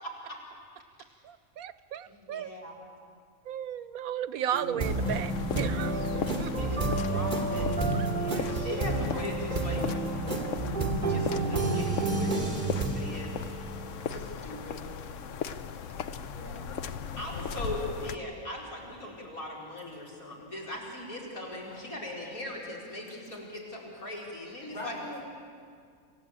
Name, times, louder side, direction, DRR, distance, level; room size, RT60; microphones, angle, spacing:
voice 1, 0.0-0.4 2.1-2.7 6.6-7.7 8.1-9.8 11.1-12.3 12.6-13.3 14.1-14.8 17.2-25.0, left 1 dB, 80° left, -3 dB, 5.0 m, -40 dB
voice 2, 1.2-2.5 3.5-6.1 6.4-6.5 7.9-8.4 8.6-8.8, right 9 dB, 90° right, 14 dB, 1.2 m, -35 dB
sound 1, 4.5-14.2, right 2 dB, 35° right, 2.7 m, -30 dB
sound 2, 4.8-18.1, left 6 dB, 65° left, 1.1 m, -38 dB
voice 3, 16.2-16.8 17.2-17.9 18.8-19.1 19.9-20.1 20.6-20.7 21.5-21.9 23.1-23.4 24.7-25.2, left 1 dB, 35° left, -2 dB, 5.7 m, -45 dB
27.5 x 16.0 x 8.8 m, 2.2 s
omnidirectional pair, 1.5 m